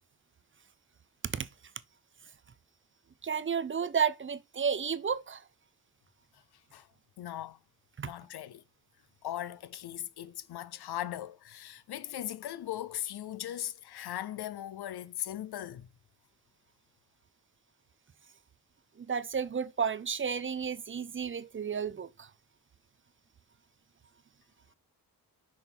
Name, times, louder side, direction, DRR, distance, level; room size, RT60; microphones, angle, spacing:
voice 1, 3.2-5.4 8.0-8.1 19.0-22.3, right 6 dB, 35° right, 0.5 m, -32 dB
voice 2, 7.2-7.6 8.0-8.6 9.2-15.9, left 12 dB, 90° left, 0.7 m, -39 dB
6.1 x 4.5 x 5.4 m
wide cardioid pair, 125°, 38 cm